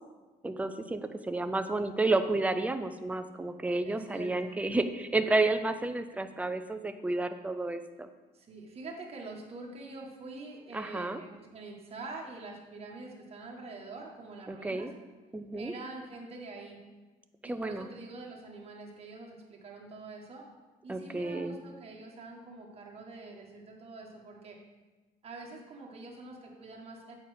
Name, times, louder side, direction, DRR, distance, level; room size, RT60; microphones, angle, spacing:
voice 1, 0.4-8.1 10.7-11.2 14.5-14.9 15.3-15.7 17.4-17.9 20.9-21.5, right 2 dB, 10° right, 8 dB, 0.5 m, -31 dB
voice 2, 3.8-4.6 8.3-14.9 15.5-16.8 17.4-20.5 20.8-24.6 25.2-27.1, right 3 dB, 35° right, -1 dB, 1.6 m, -45 dB
8.5 x 4.3 x 5.0 m, 1.2 s
cardioid pair, 110°, 17 cm